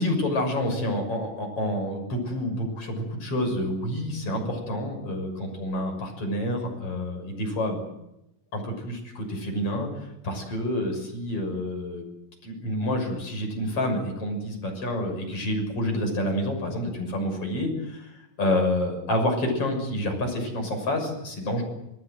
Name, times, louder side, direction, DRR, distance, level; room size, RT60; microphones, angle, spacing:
voice 1, 0.0-8.0 8.5-9.9 10.2-12.0 12.4-21.6, left 1 dB, 40° left, 3 dB, 7.4 m, -28 dB
27.5 x 19.5 x 7.8 m, 0.85 s
omnidirectional pair, 3.9 m